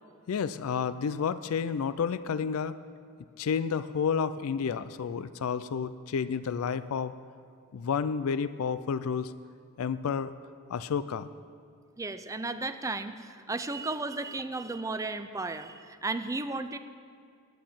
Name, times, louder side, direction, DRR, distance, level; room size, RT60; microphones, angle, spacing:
voice 1, 0.3-2.8 3.4-7.1 7.7-9.3 9.8-10.3 10.7-11.3, left 6 dB, 70° left, 15 dB, 0.4 m, -30 dB
voice 2, 12.0-16.8, right 3 dB, 15° right, 10 dB, 0.5 m, -34 dB
9.7 x 9.2 x 8.7 m, 2.3 s
head